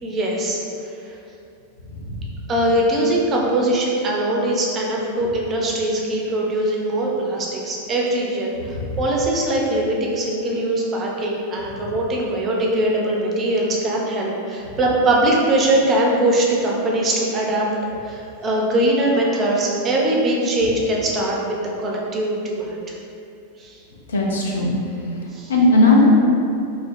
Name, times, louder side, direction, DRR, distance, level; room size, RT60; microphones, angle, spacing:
voice 1, 0.0-1.1 2.5-17.7 18.0-22.8 23.6-23.8 25.3-25.5, right 1 dB, 25° right, -2 dB, 0.4 m, -21 dB
voice 2, 24.1-24.7 25.5-26.1, left 2 dB, 65° left, -3 dB, 0.4 m, -16 dB
2.5 x 2.0 x 3.0 m, 2.6 s
figure-of-eight pair, 90°, 0 cm